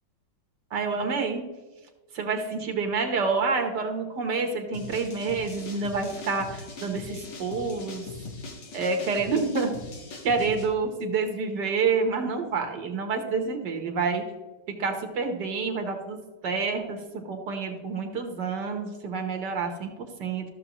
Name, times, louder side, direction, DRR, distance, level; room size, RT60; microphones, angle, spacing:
voice 1, 0.7-1.4 2.1-8.1 8.7-9.7 10.2-14.2 14.8-16.2 16.4-17.0 17.2-20.4, right 4 dB, 70° right, 5 dB, 1.7 m, -28 dB
sound 1, 4.7-10.7, left 3 dB, 75° left, 2.2 m, -41 dB
14.0 x 6.8 x 3.0 m, 1.2 s
omnidirectional pair, 2.0 m